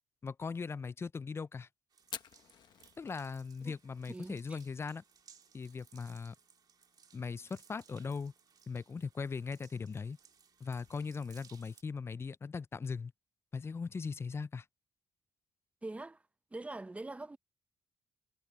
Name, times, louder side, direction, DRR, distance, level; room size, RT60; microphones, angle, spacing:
voice 1, 0.2-1.7 3.0-5.0 5.5-6.3 7.1-8.3 8.7-10.2 10.6-13.1 13.5-14.6, left 5 dB, 35° left, 0.4 m, -39 dB
sound 1, 1.9-11.8, right 7 dB, 55° right, 2.2 m, -63 dB
Fire, 2.0-11.2, left 9 dB, 70° left, 1.3 m, -56 dB
voice 2, 4.1-4.6 15.8-16.2 16.5-17.4, right 2 dB, 15° right, 0.8 m, -43 dB
cardioid pair, 70°, 8 cm